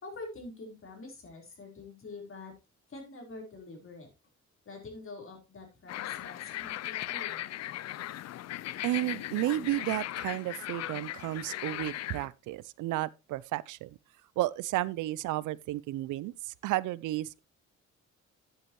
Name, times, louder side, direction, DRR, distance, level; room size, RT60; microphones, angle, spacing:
voice 1, 0.0-2.5 2.9-4.1 4.7-7.5, left 3 dB, 45° left, 3.9 m, -46 dB
sound 1, 5.9-12.3, left 14 dB, 60° left, 0.5 m, -38 dB
voice 2, 8.8-14.0 14.4-17.4, right 16 dB, 80° right, 0.5 m, -32 dB
10.5 x 7.8 x 3.0 m
cardioid pair, 90°, 30 cm